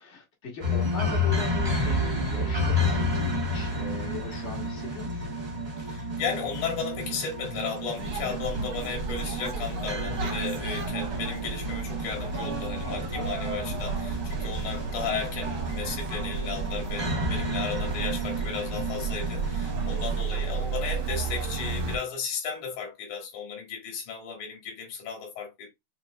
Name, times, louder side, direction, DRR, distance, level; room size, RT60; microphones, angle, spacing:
voice 1, 0.0-5.2 12.8-13.3 19.9-20.2 20.5-20.7, left 5 dB, 45° left, 0.8 m, -39 dB
sound 1, 0.6-20.2, left 1 dB, 45° right, 0.8 m, -31 dB
voice 2, 5.8-25.7, left 6 dB, 70° left, 3.0 m, -35 dB
sound 2, 8.0-22.0, right 5 dB, 65° right, 1.3 m, -33 dB
6.5 x 2.9 x 2.3 m
omnidirectional pair, 3.7 m